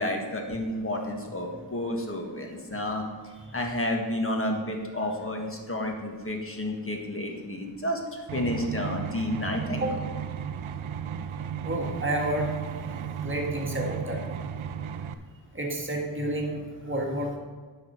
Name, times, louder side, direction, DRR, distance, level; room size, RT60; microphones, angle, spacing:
voice 1, 0.0-3.0 3.5-9.9, left 1 dB, 30° left, 2 dB, 1.4 m, -31 dB
sound 1, 8.3-15.1, right 8 dB, 85° right, 0.6 m, -35 dB
voice 2, 11.6-12.5 13.2-14.5 15.5-17.4, right 1 dB, 25° right, 0 dB, 1.6 m, -30 dB
9.7 x 6.3 x 4.4 m, 1.5 s
wide cardioid pair, 110°, 47 cm